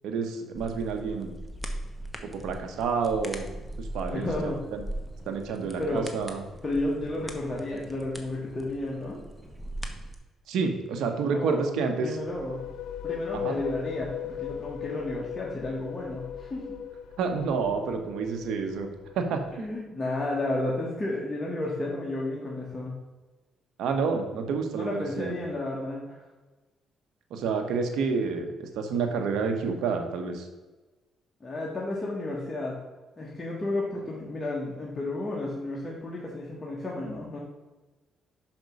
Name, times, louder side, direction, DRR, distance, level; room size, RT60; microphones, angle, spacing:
voice 1, 0.0-1.3 2.2-3.5 3.8-4.8 5.3-6.4 10.5-12.2 13.3-13.6 17.2-18.9 19.1-19.7 23.8-25.3 27.3-30.5, right 5 dB, 85° right, 5 dB, 1.1 m, -29 dB
sound 1, 0.5-10.1, right 1 dB, ahead, 1.0 m, -40 dB
voice 2, 4.1-4.6 5.8-6.1 6.6-9.2 11.3-11.6 12.0-12.6 13.0-16.8 19.6-22.9 24.7-26.2 31.4-32.8 33.2-37.4, left 2 dB, 20° left, -4 dB, 1.6 m, -32 dB
sound 2, 12.1-19.8, left 9 dB, 80° left, 0.3 m, -38 dB
6.0 x 5.3 x 5.3 m, 1.2 s
cardioid pair, 90°, 0 cm